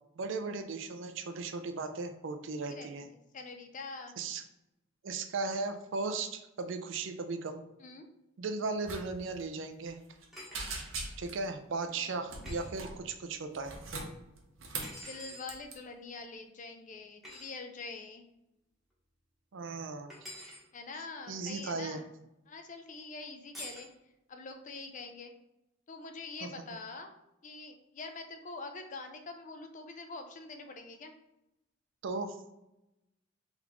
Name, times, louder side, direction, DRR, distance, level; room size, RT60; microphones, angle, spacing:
voice 1, 0.2-3.1 4.2-4.4 5.0-7.6 8.4-10.0 11.2-13.7 19.5-20.1 21.3-22.0 26.4-26.5 32.0-32.3, right 3 dB, 65° right, 8 dB, 0.5 m, -36 dB
voice 2, 2.7-4.1 7.8-8.1 11.9-12.1 12.6-12.9 15.1-18.2 20.7-22.1 22.5-23.9 24.3-25.3 25.9-27.1 27.4-31.1, left 3 dB, 40° left, 6 dB, 0.5 m, -45 dB
sound 1, 8.8-9.0 9.3-9.4 9.9-10.2 10.5-11.4 12.3-13.0 13.5-15.0 15.4-15.7, right 3 dB, 85° right, 0.8 m, -40 dB
sound 2, 10.3-10.8 12.4-12.7 14.8-15.5 17.2-17.5 20.1-20.6 23.5-23.9, equal, ahead, 1.1 m, -46 dB
4.0 x 3.4 x 3.0 m, 0.90 s
head